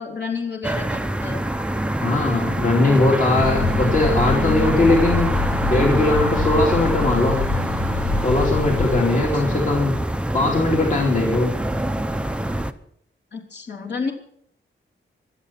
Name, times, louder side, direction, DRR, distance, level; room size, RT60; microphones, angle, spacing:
voice 1, 0.0-1.4 9.2-9.6 13.3-14.1, left 5 dB, 55° left, -1 dB, 3.4 m, -31 dB
sound 1, 0.6-12.7, right 1 dB, 5° right, 0.7 m, -25 dB
voice 2, 2.0-5.4 5.7-7.4 8.2-10.0 10.3-11.5, left 2 dB, 40° left, -1 dB, 2.8 m, -20 dB
sound 2, 3.4-9.0, left 4 dB, 90° left, 1.3 m, -25 dB
25.0 x 8.5 x 5.8 m, 0.67 s
wide cardioid pair, 180°, 21 cm